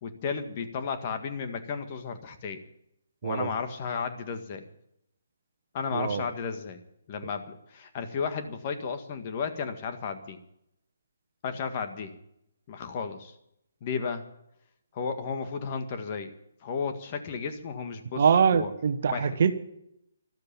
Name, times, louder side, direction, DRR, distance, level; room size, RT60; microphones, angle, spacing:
voice 1, 0.0-2.6 3.2-4.6 5.7-6.8 7.1-10.4 11.4-12.1 12.7-13.3 13.8-14.2 14.9-16.3 16.6-18.2 18.5-18.7 19.1-19.4, left 5 dB, 35° left, 7 dB, 1.8 m, -33 dB
voice 2, 5.9-6.3 18.2-19.5, right 6 dB, 50° right, 11 dB, 1.2 m, -24 dB
13.5 x 12.5 x 7.2 m, 0.78 s
figure-of-eight pair, 140°, 0 cm